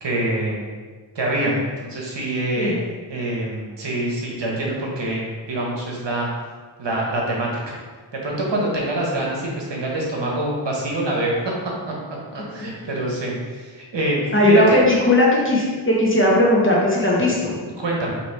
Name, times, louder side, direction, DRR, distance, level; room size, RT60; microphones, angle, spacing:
voice 1, 0.0-0.6 1.1-2.8 3.1-6.3 6.8-7.8 8.1-11.5 12.3-14.2 14.5-14.8 17.6-18.2, right 1 dB, 60° right, -2 dB, 1.0 m, -25 dB
voice 2, 14.3-17.5, left 1 dB, 25° left, -5 dB, 1.0 m, -17 dB
4.3 x 2.9 x 3.3 m, 1.4 s
wide cardioid pair, 85°, 48 cm